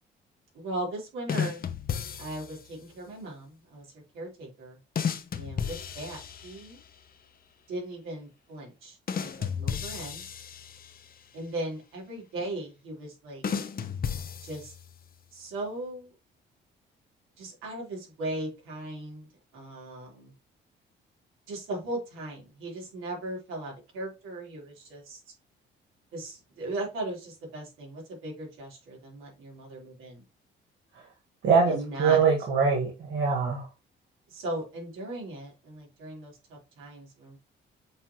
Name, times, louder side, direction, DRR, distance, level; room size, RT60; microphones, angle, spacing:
voice 1, 0.5-1.6 2.2-3.9 4.1-4.8 5.4-6.8 7.7-10.2 11.3-13.4 14.4-14.7 15.3-16.1 17.4-19.3 19.5-20.3 21.5-25.2 26.1-30.2 31.7-32.2 34.3-37.4, right 2 dB, 90° right, 3.9 m, -38 dB
sound 1, 1.3-2.7 5.0-6.9 9.1-11.2 13.4-15.1, left 7 dB, 45° left, 0.9 m, -34 dB
voice 2, 31.4-33.6, right 5 dB, 70° right, 1.9 m, -23 dB
7.7 x 4.3 x 3.0 m
cardioid pair, 90°, 20 cm